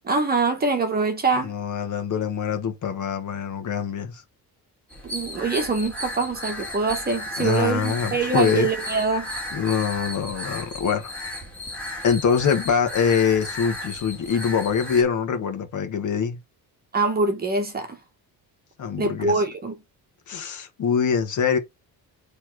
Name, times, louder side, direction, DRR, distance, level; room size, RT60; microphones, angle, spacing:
voice 1, 0.0-1.5 5.0-9.3 16.9-18.0 19.0-19.7, right 4 dB, 25° right, 1.1 m, -24 dB
voice 2, 1.4-4.2 7.4-8.7 9.5-11.1 12.0-16.4 18.8-19.4 20.3-21.6, left 7 dB, 50° left, 1.4 m, -24 dB
sound 1, 4.9-15.0, left 1 dB, 5° left, 2.1 m, -34 dB
7.0 x 3.4 x 4.6 m
cardioid pair, 150°, 38 cm